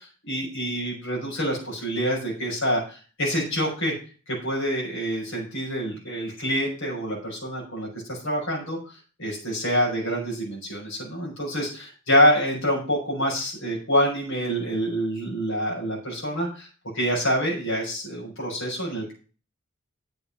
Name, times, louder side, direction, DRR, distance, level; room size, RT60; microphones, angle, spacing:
voice 1, 0.0-3.9 4.3-8.9 9.2-16.7 16.9-19.1, equal, 65° left, -3 dB, 5.9 m, -26 dB
9.5 x 7.7 x 5.7 m, 0.37 s
head